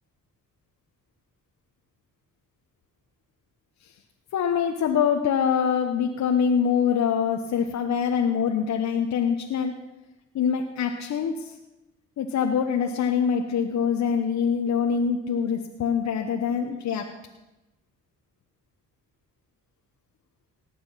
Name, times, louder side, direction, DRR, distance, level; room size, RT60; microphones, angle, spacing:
voice 1, 4.3-9.7 10.3-11.6 12.2-17.1, left 7 dB, 60° left, 3 dB, 1.1 m, -24 dB
18.5 x 6.9 x 5.7 m, 1.0 s
supercardioid pair, 55°, 31 cm